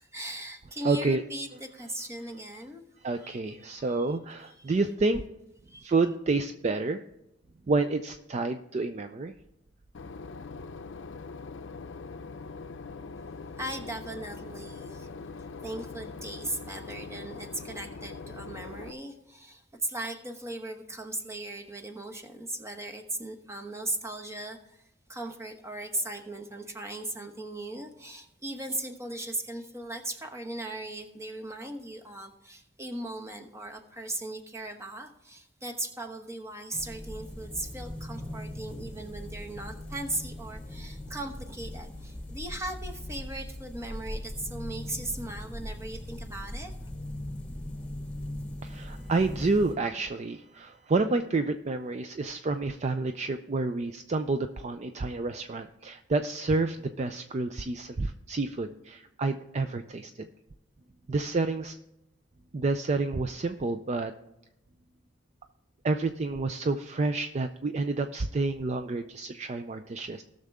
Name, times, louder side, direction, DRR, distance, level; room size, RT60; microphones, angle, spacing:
voice 1, 0.0-2.8 3.2-4.1 5.7-5.9 13.6-15.1 15.6-24.8 25.1-46.9, right 1 dB, 15° right, 4 dB, 1.1 m, -38 dB
voice 2, 0.8-1.2 3.0-5.4 5.8-7.0 7.7-9.3 48.6-60.3 61.1-61.8 62.5-64.1 65.8-70.2, right 3 dB, 35° right, 9 dB, 0.4 m, -29 dB
Boat Water vehicle / Engine, 9.9-18.9, left 4 dB, 80° left, 0.5 m, -42 dB
sound 1, 36.7-49.7, left 1 dB, 5° left, 2.7 m, -40 dB
18.0 x 6.5 x 3.5 m, 0.88 s
head